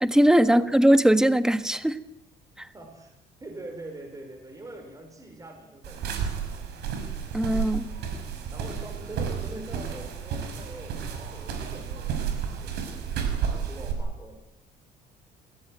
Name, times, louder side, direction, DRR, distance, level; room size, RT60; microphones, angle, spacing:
voice 1, 0.0-2.0 2.6-2.7 7.3-7.9, right 1 dB, 5° right, 11 dB, 1.4 m, -20 dB
voice 2, 2.7-3.1 3.4-6.6 8.5-14.5, right 2 dB, 20° right, 4 dB, 5.5 m, -44 dB
sound 1, 5.8-13.9, right 7 dB, 80° right, 5.9 m, -32 dB
27.5 x 17.5 x 9.3 m, 0.90 s
cardioid pair, 110°, 17 cm